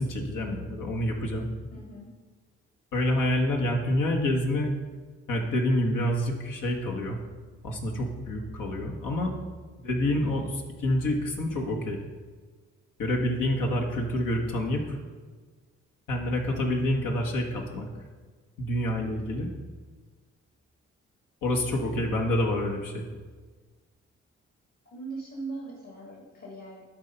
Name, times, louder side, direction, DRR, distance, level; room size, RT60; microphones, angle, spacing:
voice 1, 0.0-1.5 2.9-4.7 5.3-7.2 7.6-9.3 9.8-12.0 13.0-15.0 16.1-17.9 18.6-19.5 21.4-23.1, left 1 dB, 65° left, 1 dB, 1.6 m, -27 dB
voice 2, 1.7-2.1 19.0-19.3 24.8-26.8, right 3 dB, 50° left, -4 dB, 2.5 m, -40 dB
11.0 x 4.5 x 5.3 m, 1.4 s
hypercardioid pair, 40°, 34 cm